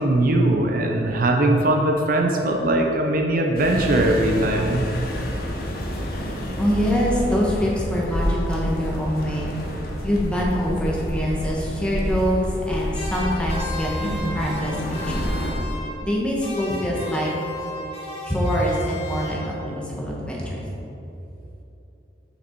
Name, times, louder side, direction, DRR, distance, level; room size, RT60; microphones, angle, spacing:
voice 1, 0.0-4.9, right 1 dB, 50° right, 2 dB, 0.6 m, -20 dB
sound 1, 3.5-15.5, equal, 55° left, 1.0 m, -28 dB
voice 2, 6.6-9.5 10.0-12.4 12.7-15.3 16.0-17.3 18.2-20.6, equal, 5° left, -4 dB, 1.2 m, -24 dB
sound 2, 12.9-16.1 16.4-19.8, left 1 dB, 35° left, 1.3 m, -35 dB
6.8 x 6.1 x 4.5 m, 2.9 s
head